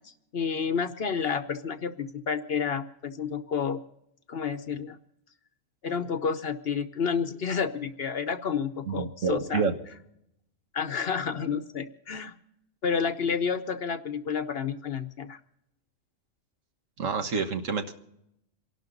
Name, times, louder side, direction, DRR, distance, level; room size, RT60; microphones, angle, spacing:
voice 1, 0.3-3.8 4.3-5.0 5.8-9.6 10.7-12.4 12.8-15.4, left 6 dB, 50° left, 10 dB, 1.0 m, -30 dB
voice 2, 8.9-9.8 17.0-17.9, right 5 dB, 70° right, 7 dB, 1.6 m, -28 dB
28.0 x 12.0 x 3.9 m, 0.81 s
omnidirectional pair, 1.4 m